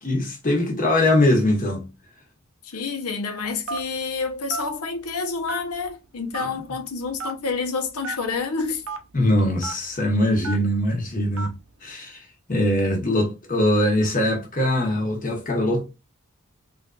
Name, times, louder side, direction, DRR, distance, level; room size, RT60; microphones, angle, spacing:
voice 1, 0.0-1.9 9.1-11.5 11.8-12.2 12.5-15.8, left 1 dB, 35° left, 1.1 m, -22 dB
voice 2, 2.6-8.8, left 4 dB, 85° left, 0.8 m, -28 dB
Telephone, 3.7-4.0 4.5-4.7 5.5-5.9 6.3-6.5 7.2-7.4 8.0-8.2 8.8-9.0 9.6-9.7 10.4-10.7 11.4-11.6, right 2 dB, 65° right, 0.5 m, -30 dB
3.7 x 2.5 x 2.3 m
head